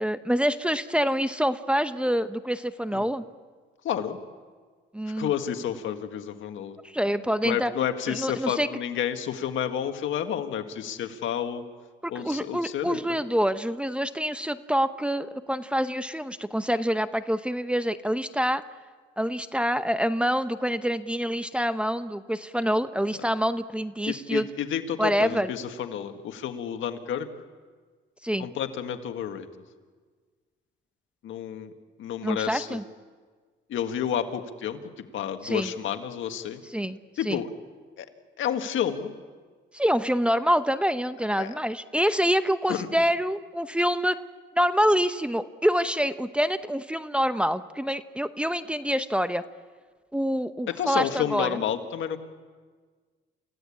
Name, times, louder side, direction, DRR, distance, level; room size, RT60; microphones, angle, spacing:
voice 1, 0.0-3.2 4.9-5.3 6.8-7.7 8.1-8.7 12.0-18.6 19.2-24.5 25.0-25.5 28.2-28.5 32.2-32.8 35.4-35.7 36.7-37.0 37.2-37.4 39.7-44.2 44.6-49.4 50.1-51.6, equal, 5° right, 11 dB, 0.8 m, -26 dB
voice 2, 3.8-4.2 5.1-6.8 7.4-11.6 12.1-13.0 24.1-27.3 28.4-29.5 31.2-31.7 32.0-32.8 33.7-34.8 35.1-36.6 37.2-37.5 38.0-38.1 38.4-39.1 41.4-41.5 42.7-42.9 50.7-52.2, left 9 dB, 75° left, 7 dB, 1.7 m, -30 dB
28.5 x 16.0 x 8.6 m, 1.5 s
cardioid pair, 90°, 20 cm